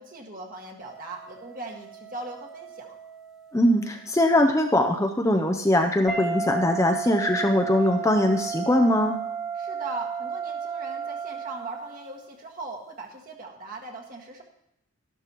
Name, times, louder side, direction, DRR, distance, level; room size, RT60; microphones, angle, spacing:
voice 1, 0.0-3.0 9.5-14.4, right 2 dB, 40° right, 0 dB, 1.8 m, -39 dB
sound 1, 0.8-4.0 6.1-12.2, right 5 dB, ahead, 1.6 m, -34 dB
voice 2, 3.5-9.2, left 1 dB, 15° left, 3 dB, 0.5 m, -21 dB
13.0 x 12.0 x 3.0 m, 0.80 s
head